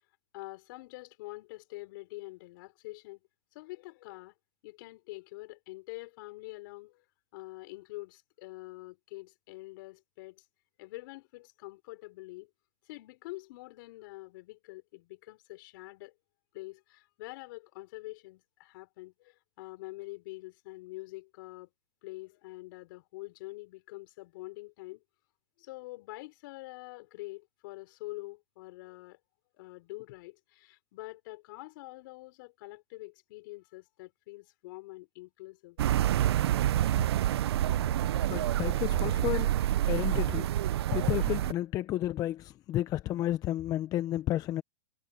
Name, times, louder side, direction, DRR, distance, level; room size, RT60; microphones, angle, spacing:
voice 1, 0.3-3.2 3.5-4.3 4.6-7.0 7.3-10.5 10.8-12.5 12.8-16.1 16.5-21.7 22.0-25.0 25.6-29.2 29.6-35.8, left 21 dB, 55° left, 5.6 m, -45 dB
sound 1, 35.8-41.5, right 12 dB, 75° right, 0.6 m, -27 dB
voice 2, 38.3-44.6, left 14 dB, 25° left, 0.7 m, -32 dB
supercardioid pair, 145°, 14 cm